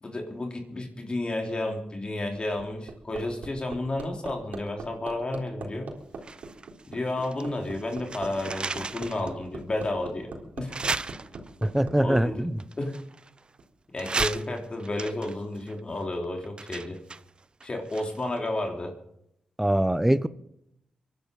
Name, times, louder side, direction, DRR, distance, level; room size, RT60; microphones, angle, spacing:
voice 1, 0.0-5.9 6.9-10.8 12.0-12.5 12.8-13.0 13.9-17.0 17.6-19.0, left 2 dB, 35° left, 3.5 m, -32 dB
Hammer, 2.3-12.2 13.6-13.7, right 3 dB, 70° right, 3.7 m, -40 dB
sound 1, 6.2-7.5 7.7-9.3 9.8-9.9 10.7-11.7 12.6-13.6 14.0-18.4 18.7-18.8, right 3 dB, 35° right, 0.7 m, -35 dB
voice 2, 11.6-12.6 19.6-20.3, right 1 dB, 5° right, 0.9 m, -23 dB
24.0 x 11.0 x 5.3 m
cardioid pair, 60°, 3 cm